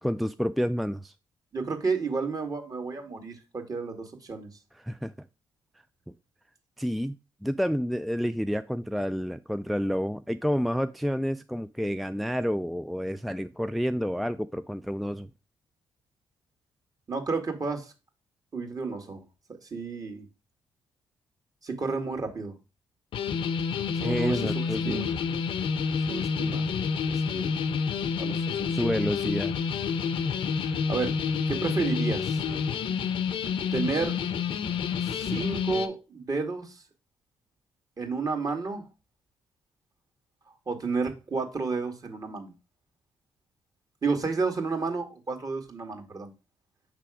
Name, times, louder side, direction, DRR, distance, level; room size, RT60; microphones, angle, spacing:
voice 1, 0.0-1.1 4.7-5.1 6.8-7.2 7.4-15.3 24.0-25.0 28.7-29.5, equal, ahead, 0.3 m, -29 dB
voice 2, 1.5-4.5 17.1-17.9 18.5-19.2 19.6-20.2 21.6-22.5 24.0-25.1 26.1-26.7 27.1-27.5 28.2-28.8 30.9-31.1 31.5-32.4 33.7-34.2 35.0-36.8 38.0-38.9 40.7-42.5 44.0-46.3, right 4 dB, 40° right, 1.9 m, -31 dB
sound 1, 23.1-35.9, left 6 dB, 65° left, 0.6 m, -29 dB
5.9 x 3.4 x 4.8 m
supercardioid pair, 60°, 9 cm